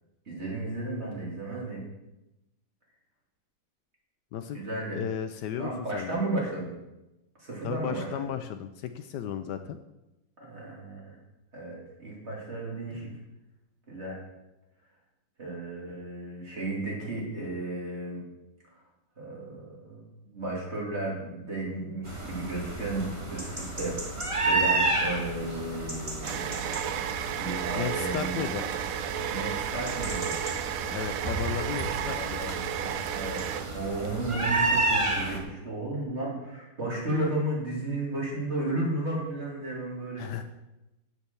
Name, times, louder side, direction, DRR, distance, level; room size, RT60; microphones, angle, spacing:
voice 1, 0.3-1.8 4.5-5.0 5.6-6.7 7.4-8.2 10.4-11.2 11.5-13.1 13.9-14.2 15.4-18.2 18.7-18.8 19.2-27.0 27.3-28.4 29.3-30.4 32.2-33.4 33.7-40.4, right 2 dB, 35° right, -4 dB, 3.1 m, -34 dB
voice 2, 4.3-4.6 4.9-6.2 7.6-9.8 27.7-28.7 30.9-32.4 40.2-40.4, left 9 dB, 75° left, 9 dB, 1.1 m, -34 dB
sound 1, 22.0-35.4, right 2 dB, 20° right, 1.3 m, -31 dB
sound 2, 25.4-34.1, right 10 dB, 75° right, 0.8 m, -33 dB
7.9 x 7.3 x 6.9 m, 0.96 s
omnidirectional pair, 2.0 m